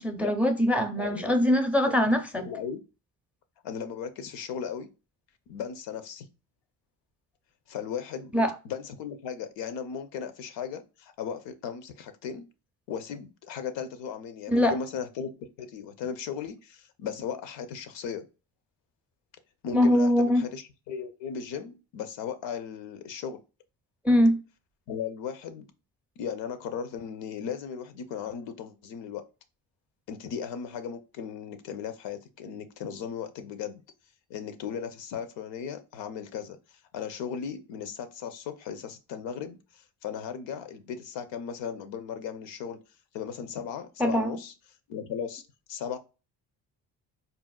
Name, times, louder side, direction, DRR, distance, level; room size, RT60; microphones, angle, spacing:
voice 1, 0.0-2.4 8.3-8.5 14.5-14.8 19.7-20.4 24.0-24.4 44.0-44.3, left 1 dB, 5° right, 0.4 m, -22 dB
voice 2, 1.0-1.3 2.4-2.8 3.6-4.9 5.5-6.3 7.7-8.4 8.6-12.5 12.9-15.3 15.6-18.2 19.6-23.4 24.9-25.7 26.2-29.2 30.1-33.8 34.3-36.6 36.9-39.6 40.0-42.8 43.1-44.5 44.9-45.4 45.7-46.0, left 7 dB, 80° left, 0.6 m, -36 dB
4.0 x 2.1 x 2.3 m
cardioid pair, 70°, 43 cm